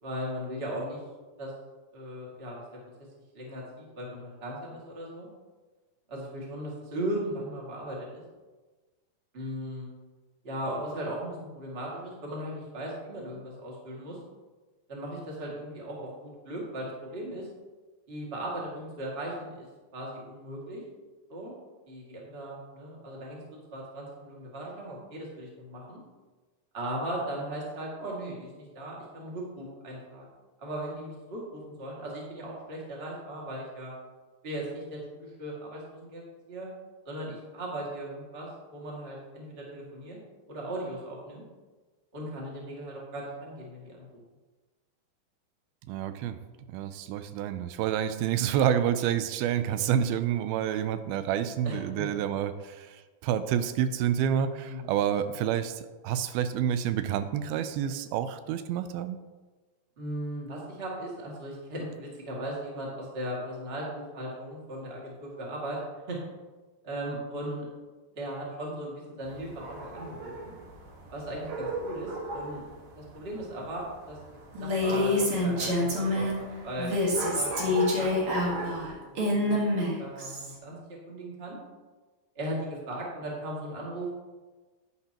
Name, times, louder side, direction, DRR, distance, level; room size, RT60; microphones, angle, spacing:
voice 1, 0.0-1.0 1.4-1.5 1.9-2.6 3.3-5.3 6.1-8.2 9.3-9.9 10.4-14.2 14.9-17.5 18.1-19.7 19.9-20.8 21.3-21.5 21.9-26.0 26.7-30.3 30.6-33.9 34.4-36.2 36.5-36.7 37.0-40.2 40.5-41.4 42.1-44.1 51.6-52.1 54.6-54.9 60.0-65.8 66.1-66.2 66.8-67.7 68.1-70.5 71.1-72.6 72.9-76.9 77.3-81.6 82.3-84.1, right 1 dB, 25° right, -4 dB, 1.5 m, -38 dB
voice 2, 45.9-46.4 46.7-59.2, right 9 dB, 85° right, 11 dB, 2.4 m, -28 dB
sound 1, 69.2-78.9, right 2 dB, 65° right, 3.2 m, -39 dB
Female speech woman speaking, 74.5-76.4 76.8-80.5, left 1 dB, 45° right, 2.0 m, -27 dB
10.0 x 9.8 x 2.9 m, 1.3 s
omnidirectional pair, 4.4 m